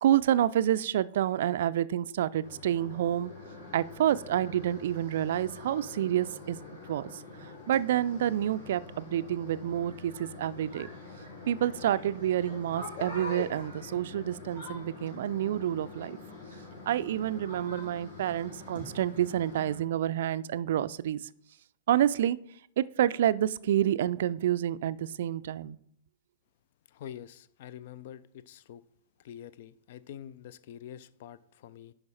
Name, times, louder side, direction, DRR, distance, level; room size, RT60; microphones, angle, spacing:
voice 1, 0.0-3.3 3.7-6.6 6.9-7.1 7.7-10.9 11.5-16.2 16.9-21.2 21.9-22.4 22.8-25.8, right 11 dB, 55° right, 0.4 m, -28 dB
sound 1, 2.4-19.8, left 3 dB, 70° left, 3.9 m, -45 dB
voice 2, 26.9-28.8 29.2-31.9, left 10 dB, 50° left, 0.4 m, -46 dB
11.0 x 4.7 x 4.2 m
figure-of-eight pair, 105°, 0 cm